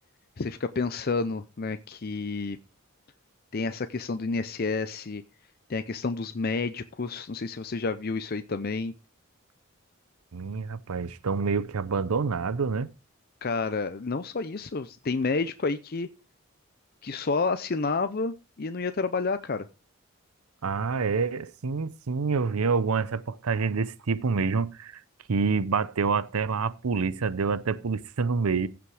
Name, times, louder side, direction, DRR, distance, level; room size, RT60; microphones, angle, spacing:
voice 1, 0.4-2.6 3.5-5.2 5.7-8.9 13.4-16.1 17.0-19.7, left 4 dB, 45° left, 0.6 m, -30 dB
voice 2, 10.3-12.9 20.6-25.0 25.3-28.7, right 5 dB, 90° right, 0.6 m, -27 dB
15.5 x 6.0 x 4.8 m
head